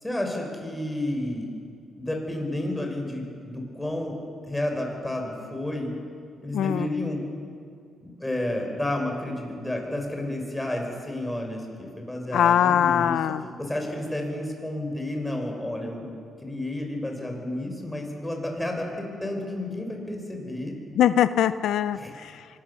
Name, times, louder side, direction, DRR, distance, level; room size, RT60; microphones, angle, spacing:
voice 1, 0.0-1.5 2.0-4.2 4.5-5.9 6.4-7.2 8.0-13.1 13.6-16.1 16.4-20.7 22.0-22.1, left 1 dB, 10° left, 1 dB, 5.8 m, -31 dB
voice 2, 6.5-6.9 12.3-13.4 21.0-22.5, left 10 dB, 75° left, 13 dB, 0.6 m, -22 dB
24.5 x 18.5 x 7.1 m, 2.4 s
cardioid pair, 90°, 0 cm